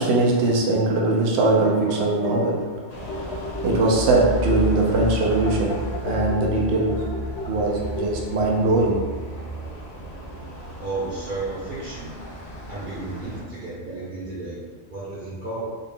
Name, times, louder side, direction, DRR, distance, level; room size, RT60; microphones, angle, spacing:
voice 1, 0.0-2.7 3.6-7.2 7.5-9.1, right 2 dB, 65° right, -2 dB, 0.9 m, -21 dB
sound 1, 1.2-8.6, left 2 dB, 70° left, 1.0 m, -35 dB
sound 2, 2.9-13.4, right 1 dB, 40° left, 0.7 m, -33 dB
voice 2, 10.8-12.1 12.7-15.7, right 2 dB, 45° right, -12 dB, 1.2 m, -33 dB
4.1 x 3.6 x 2.3 m, 1.4 s
omnidirectional pair, 1.2 m